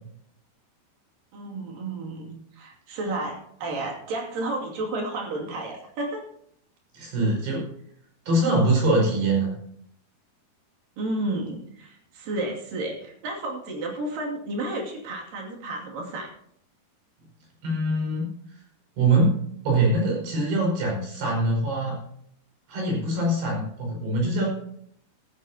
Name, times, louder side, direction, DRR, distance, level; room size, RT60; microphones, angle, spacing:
voice 1, 1.3-6.2 11.0-16.3, right 2 dB, 55° right, 0 dB, 4.0 m, -32 dB
voice 2, 6.9-7.7 8.3-9.5 17.6-18.3 19.0-19.4 19.7-22.0 22.7-24.5, right 2 dB, 80° right, -1 dB, 7.3 m, -23 dB
14.0 x 14.0 x 2.9 m, 0.68 s
omnidirectional pair, 4.8 m